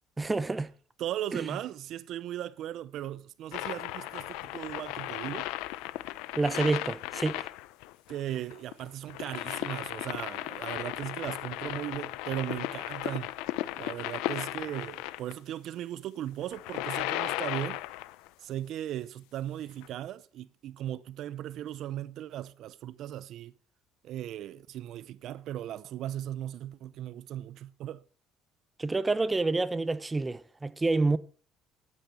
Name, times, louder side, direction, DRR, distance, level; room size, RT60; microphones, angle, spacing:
voice 1, 0.2-0.7 1.3-1.6 6.4-7.5 28.8-31.2, right 3 dB, 20° right, 0.9 m, -28 dB
voice 2, 1.0-5.5 8.1-13.3 13.8-17.8 18.4-23.5 24.0-28.0, right 12 dB, 65° right, 0.7 m, -37 dB
sound 1, 3.5-15.3 16.4-18.3 19.8-19.9, left 17 dB, 85° left, 0.6 m, -36 dB
11.5 x 9.3 x 7.0 m
supercardioid pair, 90°, 0 cm